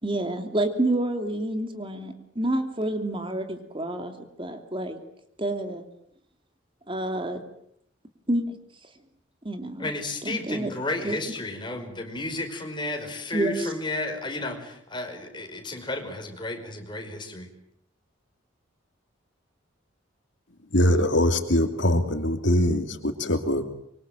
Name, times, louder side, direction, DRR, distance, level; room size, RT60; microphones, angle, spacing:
voice 1, 0.0-4.1 4.4-5.0 5.4-5.8 6.9-7.4 8.3-8.5 9.4-9.9 10.2-10.7 11.0-11.2 13.3-13.6, right 1 dB, 25° right, 7 dB, 2.9 m, -28 dB
voice 2, 9.8-17.5, left 2 dB, 25° left, 4 dB, 5.2 m, -32 dB
voice 3, 20.7-23.6, left 1 dB, 65° left, 7 dB, 2.8 m, -22 dB
26.0 x 24.5 x 9.1 m, 0.70 s
head